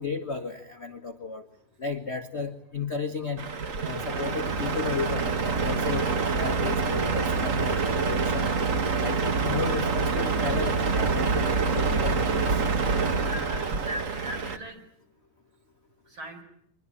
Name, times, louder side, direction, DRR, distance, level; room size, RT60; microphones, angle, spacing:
voice 1, 0.0-1.4 1.8-3.4 3.8-6.1 6.4-8.5 9.0-12.6, left 5 dB, 45° left, 6 dB, 0.8 m, -34 dB
Truck, 3.4-14.6, right 4 dB, 80° right, 0.7 m, -26 dB
voice 2, 13.3-14.8 16.1-16.4, equal, 40° right, 5 dB, 5.4 m, -38 dB
24.5 x 22.0 x 9.9 m, 0.73 s
omnidirectional pair, 3.6 m